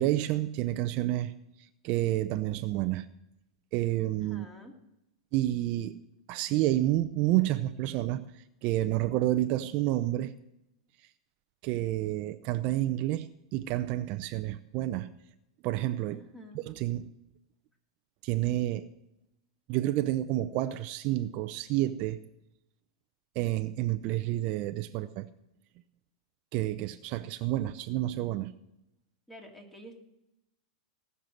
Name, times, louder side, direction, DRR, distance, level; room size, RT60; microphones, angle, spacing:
voice 1, 0.0-1.3 1.8-3.1 3.7-4.5 5.3-6.0 6.3-8.2 8.6-10.3 11.6-13.3 13.5-15.1 15.6-16.2 16.7-17.1 18.2-18.8 19.7-22.2 23.4-25.3 26.5-28.5, right 15 dB, 45° right, 10 dB, 0.6 m, -29 dB
voice 2, 4.2-4.7 16.1-16.6 29.3-30.0, equal, 10° left, 1 dB, 2.8 m, -49 dB
18.0 x 6.8 x 7.8 m, 0.86 s
hypercardioid pair, 125°, 3 cm